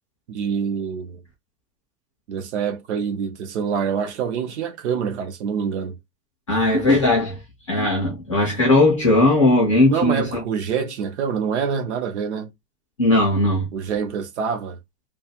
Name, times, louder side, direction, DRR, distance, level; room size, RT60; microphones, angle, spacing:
voice 1, 0.3-1.2 2.3-6.0 9.8-12.5 13.7-14.8, right 6 dB, 50° right, 0.4 m, -26 dB
voice 2, 6.5-7.4 7.7-10.2 13.0-13.7, left 2 dB, 25° left, 0.3 m, -18 dB
2.4 x 2.2 x 2.7 m
supercardioid pair, 165°, 47 cm